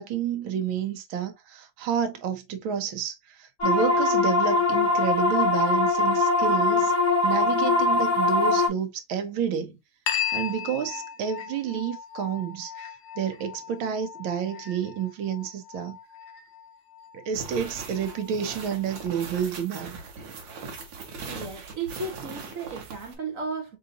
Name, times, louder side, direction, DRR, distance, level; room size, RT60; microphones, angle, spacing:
voice 1, 0.0-3.2 3.6-6.9 7.2-9.8 10.3-12.7 13.2-16.0 17.1-19.9, right 8 dB, 90° right, 1.6 m, -29 dB
sound 1, 3.6-8.7, left 3 dB, 25° left, 1.2 m, -22 dB
sound 2, 10.1-19.1, left 9 dB, 60° left, 0.7 m, -37 dB
sound 3, 17.3-23.1, right 4 dB, 70° right, 1.8 m, -40 dB
voice 2, 20.9-23.8, right 4 dB, 50° right, 1.2 m, -35 dB
4.0 x 3.9 x 2.5 m
omnidirectional pair, 2.2 m